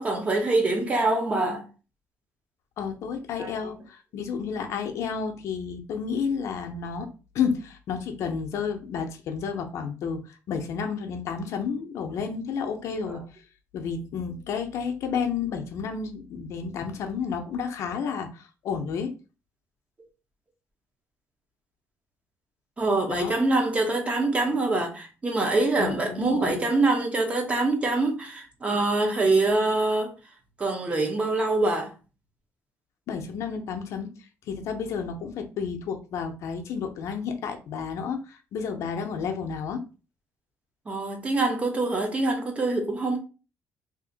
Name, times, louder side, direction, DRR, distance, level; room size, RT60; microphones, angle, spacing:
voice 1, 0.0-1.6 3.4-3.5 13.0-13.2 22.8-30.1 30.6-31.9 40.9-43.2, right 2 dB, 25° right, 0.8 m, -25 dB
voice 2, 2.8-7.1 7.3-13.2 13.7-19.1 23.1-23.4 25.8-26.6 33.1-34.1 34.5-39.8, left 6 dB, 70° left, 0.6 m, -31 dB
2.8 x 2.6 x 3.8 m
cardioid pair, 140°, 5 cm